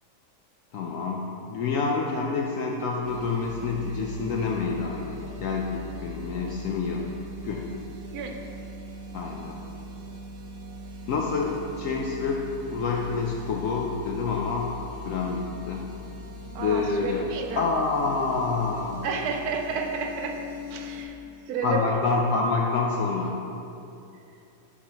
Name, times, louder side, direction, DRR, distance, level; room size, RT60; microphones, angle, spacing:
voice 1, 0.7-7.0 7.4-7.7 9.1-9.6 11.1-14.8 15.1-15.9 16.6-17.3 17.6-19.1 21.6-23.4, left 4 dB, 70° left, -1 dB, 0.9 m, -27 dB
sound 1, 3.0-21.0, left 1 dB, 55° right, 1.0 m, -41 dB
voice 2, 8.1-8.4 16.5-17.7 19.0-21.2 21.5-22.2 24.3-24.4, right 4 dB, 90° right, 4 dB, 1.1 m, -31 dB
11.5 x 4.1 x 2.9 m, 2.7 s
omnidirectional pair, 1.6 m